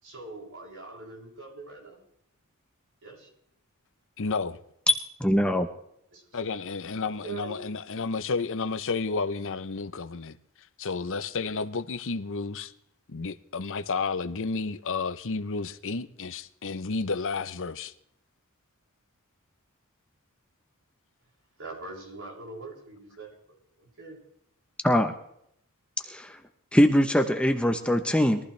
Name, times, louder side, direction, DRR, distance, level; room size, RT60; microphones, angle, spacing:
voice 1, 0.0-2.0 3.0-3.3 6.1-6.6 7.2-7.6 21.6-24.2, right 3 dB, 60° right, 6.8 m, -43 dB
voice 2, 4.2-4.6 6.3-10.4 10.8-12.7 13.1-17.9, left 4 dB, 60° left, 0.8 m, -31 dB
voice 3, 5.2-5.7 24.8-25.1 26.1-26.3 26.7-28.4, equal, 5° left, 1.0 m, -22 dB
22.5 x 14.5 x 3.4 m
head